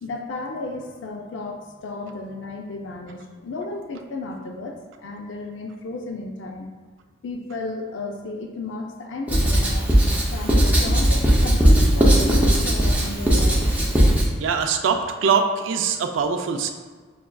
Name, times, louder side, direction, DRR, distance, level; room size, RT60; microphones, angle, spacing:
voice 1, 0.0-6.7 7.2-10.0 10.3-13.6, left 2 dB, 65° left, 2 dB, 0.4 m, -33 dB
Writing, 9.3-14.3, equal, 10° right, 0.5 m, -18 dB
voice 2, 14.4-16.7, right 5 dB, 70° right, 6 dB, 0.4 m, -22 dB
5.7 x 2.4 x 2.2 m, 1.5 s
head